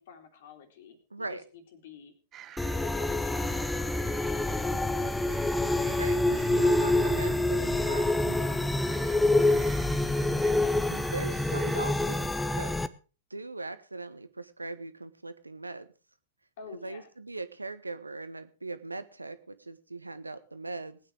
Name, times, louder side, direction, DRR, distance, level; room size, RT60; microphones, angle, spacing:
voice 1, 0.0-2.1 2.7-5.4 6.1-6.6 9.1-10.3 16.6-17.1, left 6 dB, 55° left, 7 dB, 3.1 m, -50 dB
voice 2, 1.1-1.4 6.0-8.6 10.8-12.8 13.3-15.9 16.8-21.0, right 3 dB, 80° right, 13 dB, 1.0 m, -40 dB
sound 1, 2.3-11.8, right 10 dB, 25° right, 0.9 m, -48 dB
sound 2, 2.6-12.9, left 2 dB, 5° left, 0.7 m, -27 dB
19.0 x 9.2 x 4.7 m, 0.35 s
figure-of-eight pair, 100°, 0 cm